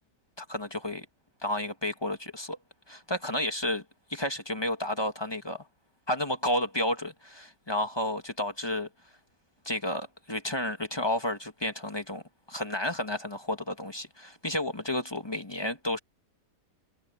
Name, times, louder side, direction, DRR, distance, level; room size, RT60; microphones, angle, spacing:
voice 1, 0.4-1.1 1.4-2.6 2.9-3.8 4.1-5.7 6.1-8.9 9.6-12.2 12.5-16.0, left 1 dB, 15° left, 1.2 m, -31 dB
omnidirectional pair, 1.9 m